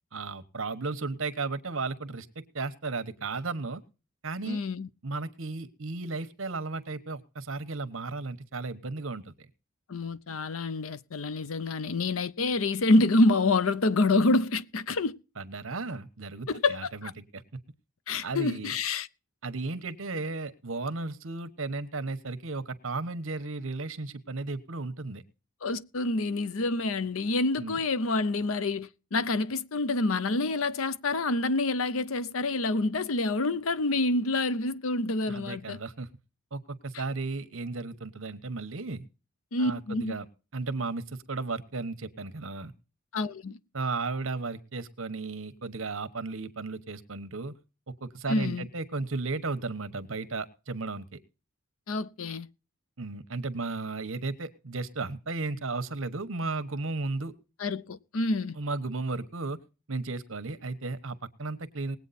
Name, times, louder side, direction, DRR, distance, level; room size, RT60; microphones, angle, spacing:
voice 1, 0.1-3.8 4.2-4.6 5.0-9.3 15.4-17.4 18.2-18.7 19.4-25.2 27.6-27.8 35.3-36.1 36.5-39.1 39.6-40.2 40.5-42.7 43.7-47.6 47.9-51.2 53.0-57.3 58.5-59.6 59.9-62.0, right 3 dB, 70° right, 1.1 m, -34 dB
voice 2, 4.4-4.9 9.9-15.1 16.5-17.1 18.1-19.1 25.6-35.8 39.5-40.2 43.1-43.6 48.3-48.7 51.9-52.5 57.6-58.6, left 2 dB, 75° left, 0.7 m, -27 dB
19.5 x 8.4 x 4.2 m
head